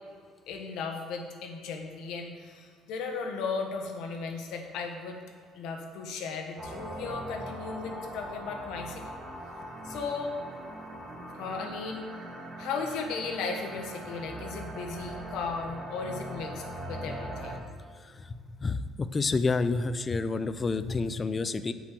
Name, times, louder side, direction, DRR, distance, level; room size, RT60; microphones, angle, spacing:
voice 1, 0.5-5.2 5.5-9.1 9.8-10.4 11.3-12.1 12.6-17.7, left 4 dB, 75° left, 3 dB, 1.3 m, -36 dB
sound 1, 6.6-17.6, right 1 dB, 25° right, 1.7 m, -40 dB
voice 2, 18.6-21.7, left 3 dB, 25° left, 12 dB, 0.4 m, -28 dB
7.9 x 5.2 x 6.8 m, 2.1 s
cardioid pair, 125°, 0 cm